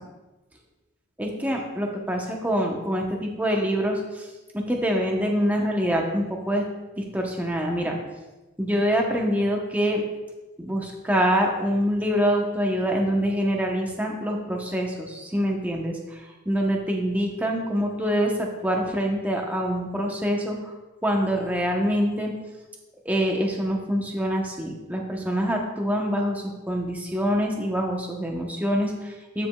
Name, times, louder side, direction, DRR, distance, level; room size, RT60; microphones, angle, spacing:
voice 1, 1.2-4.3 4.7-6.6 7.0-8.0 8.6-10.0 10.6-20.6 21.0-22.3 23.0-29.5, equal, 10° right, 0 dB, 0.8 m, -25 dB
14.0 x 5.1 x 2.3 m, 1.1 s
head